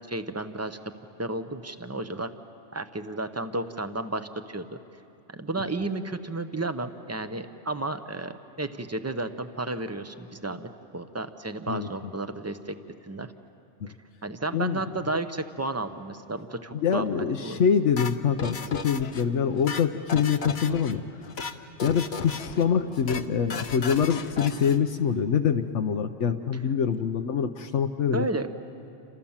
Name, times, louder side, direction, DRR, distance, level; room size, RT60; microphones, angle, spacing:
voice 1, 0.1-0.8 1.2-2.3 2.7-4.8 5.3-12.8 13.0-13.3 14.2-17.6 28.1-28.5, right 2 dB, 15° right, 9 dB, 0.8 m, -32 dB
voice 2, 16.7-21.0 21.8-28.3, left 7 dB, 85° left, 6 dB, 1.1 m, -25 dB
sound 1, 18.0-19.2 19.5-20.9 21.2-21.5 21.8-22.6 22.9-23.2 23.5-24.8, left 5 dB, 65° left, 1.2 m, -35 dB
29.0 x 27.0 x 7.3 m, 2.9 s
omnidirectional pair, 1.2 m